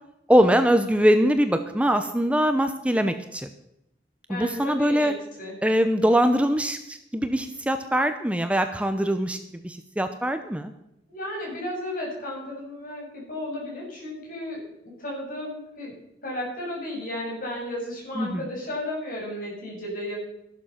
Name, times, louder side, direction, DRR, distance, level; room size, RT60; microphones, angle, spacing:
voice 1, 0.3-3.5 4.3-5.1 5.6-9.4 9.6-10.7 18.2-18.4, equal, 5° right, 8 dB, 0.7 m, -22 dB
voice 2, 4.3-5.6 11.1-15.9 16.2-20.2, left 1 dB, 50° left, -2 dB, 6.9 m, -34 dB
14.0 x 11.5 x 5.9 m, 0.82 s
head